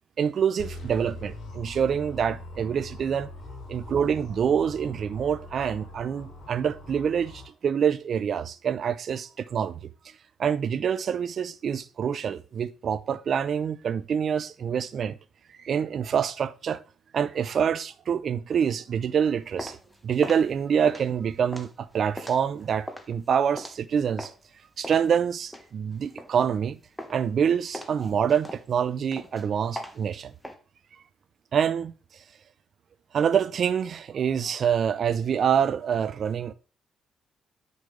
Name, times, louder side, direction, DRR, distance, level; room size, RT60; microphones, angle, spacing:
voice 1, 0.2-3.3 3.7-9.9 10.4-15.2 15.6-16.8 17.1-19.8 20.0-24.3 24.8-26.8 27.1-30.3 31.5-31.9 33.1-36.5, right 7 dB, 55° right, 0.5 m, -26 dB
sound 1, 0.6-7.5, left 2 dB, 70° left, 3.2 m, -42 dB
sound 2, 19.3-24.5 24.8-26.7 27.0-27.4 27.7-30.5, left 1 dB, 5° left, 1.2 m, -40 dB
9.1 x 5.4 x 3.2 m
cardioid pair, 90°, 0 cm